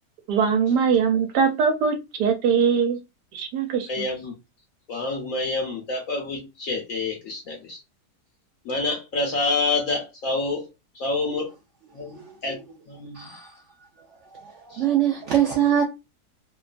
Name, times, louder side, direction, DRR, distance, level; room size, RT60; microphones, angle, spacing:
voice 1, 0.3-3.0 3.3-4.0, right 6 dB, 85° right, 1.2 m, -22 dB
voice 2, 3.9-4.3 4.9-7.8 8.6-10.7 10.9-11.5 11.9-12.6 12.9-13.3 14.7-14.8, left 3 dB, 65° left, 1.0 m, -28 dB
voice 3, 13.1-13.6 14.3-15.8, right 10 dB, 70° right, 0.7 m, -23 dB
3.0 x 2.2 x 2.4 m
omnidirectional pair, 1.7 m